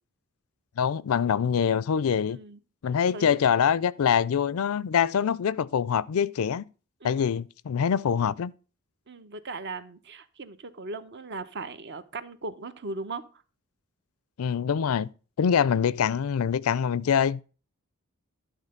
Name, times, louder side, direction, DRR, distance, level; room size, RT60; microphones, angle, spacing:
voice 1, 0.8-2.4 2.8-6.6 7.0-8.5 14.4-15.1 15.4-17.4, left 7 dB, 70° left, 0.4 m, -24 dB
voice 2, 2.3-2.6 3.1-3.4 7.0-7.2 9.1-13.4, right 3 dB, 50° right, 0.8 m, -38 dB
11.0 x 3.8 x 6.5 m
head